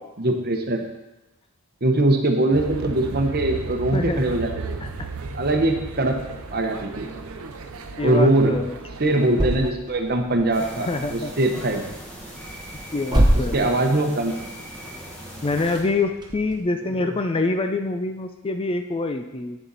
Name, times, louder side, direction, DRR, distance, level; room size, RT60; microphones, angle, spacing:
voice 1, 0.2-0.8 1.8-4.8 5.3-6.2 6.5-7.1 8.0-8.5 9.0-11.8 13.3-14.3 17.0-17.1, right 2 dB, 45° right, 4 dB, 0.9 m, -22 dB
sound 1, 2.5-9.7, right 4 dB, 75° right, 0.7 m, -35 dB
sound 2, 3.4-16.6, right 1 dB, 20° right, 1.0 m, -30 dB
voice 2, 3.9-4.3 4.8-5.1 8.0-8.8 10.8-11.3 12.9-13.6 15.4-19.6, left 3 dB, 25° left, 7 dB, 0.4 m, -26 dB
sound 3, 10.5-15.8, equal, 5° left, 1.5 m, -39 dB
9.2 x 6.9 x 4.0 m, 1.0 s
head